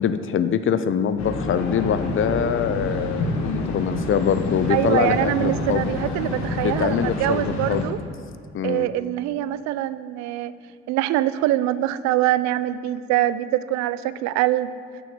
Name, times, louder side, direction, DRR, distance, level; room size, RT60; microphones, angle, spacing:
voice 1, 0.0-5.9 6.6-7.9 8.5-8.9, left 8 dB, 45° left, 12 dB, 0.6 m, -24 dB
sound 1, 1.2-7.9, left 2 dB, 70° left, 1.2 m, -28 dB
voice 2, 4.7-8.0 8.6-10.5 10.9-14.7, right 14 dB, 70° right, 15 dB, 0.4 m, -24 dB
6.2 x 5.8 x 7.2 m, 2.4 s
hypercardioid pair, 60°, 29 cm